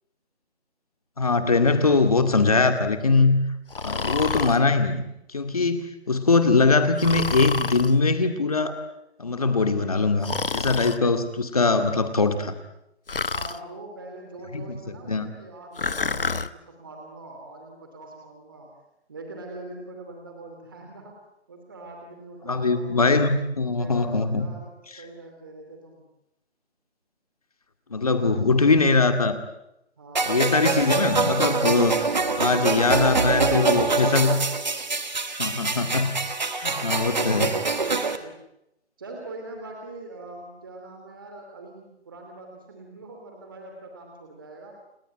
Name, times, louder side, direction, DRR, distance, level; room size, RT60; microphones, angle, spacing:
voice 1, 1.2-3.4 3.8-5.0 5.3-8.8 9.2-12.5 14.5-14.8 15.1-15.3 22.4-24.5 27.9-29.4 30.3-32.1 32.4-34.4 35.4-36.1 36.6-37.6, left 3 dB, 35° left, 8 dB, 2.3 m, -22 dB
Breathing, 3.7-4.6 7.0-7.9 10.2-11.0 13.1-13.6 15.8-16.5, left 4 dB, 55° left, 1.0 m, -28 dB
voice 2, 13.3-18.7 19.1-21.2 21.5-23.1 23.8-26.0 28.0-28.5 30.0-30.3 32.6-33.9 35.8-36.0 36.7-38.4 39.0-44.8, right 2 dB, 20° right, 2 dB, 2.8 m, -42 dB
sound 1, 30.2-38.2, right 4 dB, 40° right, 1.9 m, -25 dB
30.0 x 19.5 x 9.0 m, 0.84 s
figure-of-eight pair, 175°, 34 cm